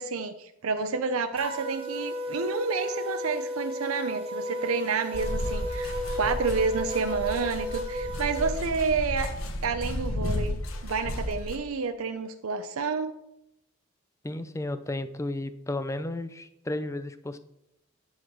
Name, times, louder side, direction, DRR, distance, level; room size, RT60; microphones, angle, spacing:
voice 1, 0.0-9.3 9.6-10.6 10.8-13.1, right 4 dB, 80° right, 8 dB, 0.6 m, -29 dB
sound 1, 1.4-8.6, equal, 25° right, 1.0 m, -34 dB
sound 2, 5.1-11.6, left 1 dB, 75° left, 1.2 m, -33 dB
voice 2, 14.2-17.4, left 1 dB, 15° left, 11 dB, 0.4 m, -33 dB
10.5 x 4.1 x 6.2 m, 0.81 s
head